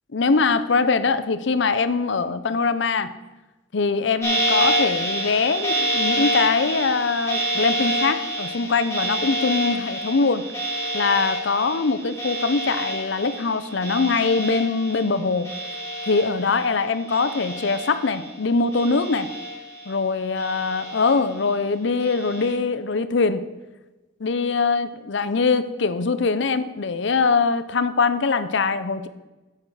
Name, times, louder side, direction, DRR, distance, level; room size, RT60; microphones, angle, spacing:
voice 1, 0.1-3.1 3.7-10.4 10.9-15.5 16.1-19.3 19.9-23.4 24.2-29.1, left 4 dB, 65° left, 12 dB, 0.6 m, -22 dB
sound 1, 4.2-16.8 17.1-18.3 18.7-19.9 20.4-21.4 22.0-22.5, right 1 dB, 15° left, 2.8 m, -28 dB
8.7 x 8.7 x 4.8 m, 1.1 s
head